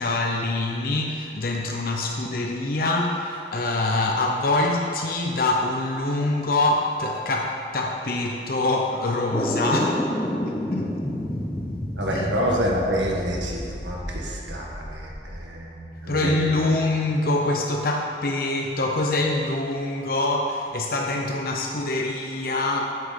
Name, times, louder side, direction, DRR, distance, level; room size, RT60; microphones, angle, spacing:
voice 1, 0.0-10.1 10.4-11.0 12.1-12.3 16.1-23.0, left 2 dB, 50° left, 0 dB, 0.7 m, -25 dB
sound 1, 9.3-15.4, left 1 dB, 15° left, 0.6 m, -30 dB
voice 2, 11.9-16.3, equal, 85° right, -2 dB, 1.6 m, -28 dB
8.1 x 7.7 x 5.2 m, 2.4 s
head